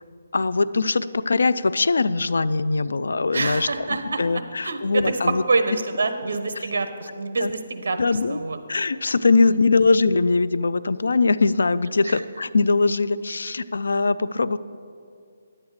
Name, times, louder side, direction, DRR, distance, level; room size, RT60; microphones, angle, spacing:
voice 1, 0.3-5.4 7.4-7.5 8.0-8.4 8.7-14.6, left 3 dB, 80° left, 16 dB, 0.4 m, -21 dB
voice 2, 3.3-4.2 4.6-8.0 8.3-8.6 9.5-9.7 12.0-12.2, right 3 dB, 65° right, 9 dB, 0.9 m, -26 dB
10.5 x 8.7 x 4.8 m, 2.4 s
hypercardioid pair, 170°, 0 cm